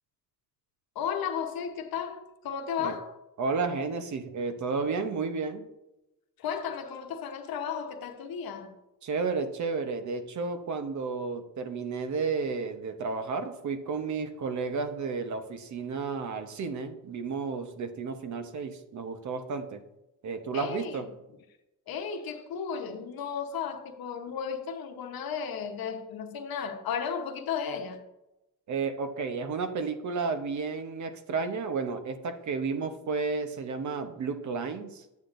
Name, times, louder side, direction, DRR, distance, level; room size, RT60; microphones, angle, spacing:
voice 1, 0.9-3.1 6.4-8.7 20.5-21.1 21.9-28.0, left 7 dB, 85° left, 7 dB, 1.0 m, -34 dB
voice 2, 3.4-5.7 9.0-19.8 20.2-21.0 28.7-35.0, right 4 dB, 55° right, 9 dB, 0.8 m, -32 dB
8.6 x 8.3 x 2.6 m, 0.93 s
cardioid pair, 140°, 35 cm